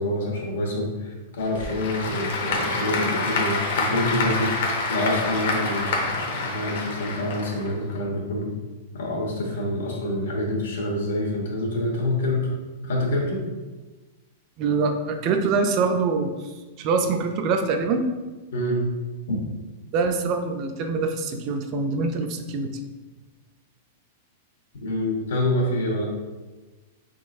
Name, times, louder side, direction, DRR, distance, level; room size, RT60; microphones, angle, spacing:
voice 1, 0.0-4.6 4.9-8.6 8.9-12.5 12.8-13.4 18.5-18.8 19.3-19.4 24.8-26.0, left 1 dB, 85° left, -1 dB, 1.1 m, -26 dB
Applause / Crowd, 1.4-8.0, left 3 dB, 65° left, 0.7 m, -27 dB
voice 2, 14.6-16.5 16.8-18.1 19.9-22.7, right 4 dB, 30° right, 6 dB, 0.3 m, -24 dB
4.0 x 3.7 x 2.6 m, 1.2 s
supercardioid pair, 165°, 0 cm